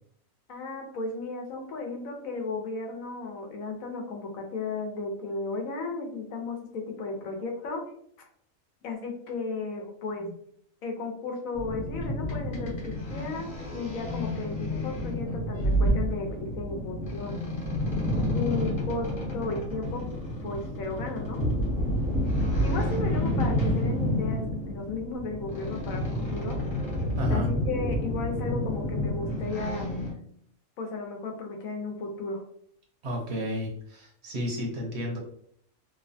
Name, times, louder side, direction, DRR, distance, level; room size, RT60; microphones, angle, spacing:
voice 1, 0.5-7.8 8.8-10.4 10.8-17.3 18.3-21.4 22.6-26.6 27.3-29.9 30.8-32.4, left 3 dB, 90° left, 2 dB, 1.1 m, -35 dB
sound 1, 11.5-30.1, equal, 45° left, 1.0 m, -29 dB
voice 2, 27.2-27.5 33.0-35.2, equal, 60° right, 0 dB, 0.9 m, -32 dB
3.0 x 2.1 x 2.6 m, 0.64 s
omnidirectional pair, 1.4 m